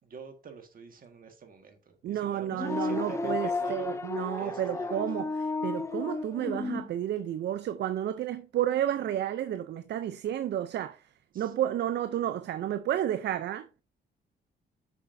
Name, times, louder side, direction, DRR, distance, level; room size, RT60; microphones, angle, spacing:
voice 1, 0.0-4.0 4.4-5.2 11.3-11.5, right 5 dB, 45° right, 1.6 m, -46 dB
voice 2, 2.0-11.0 11.4-13.8, right 11 dB, 60° right, 0.5 m, -31 dB
sound 1, 2.5-6.9, left 3 dB, 15° left, 0.5 m, -33 dB
7.1 x 5.7 x 2.6 m
cardioid pair, 90°, 20 cm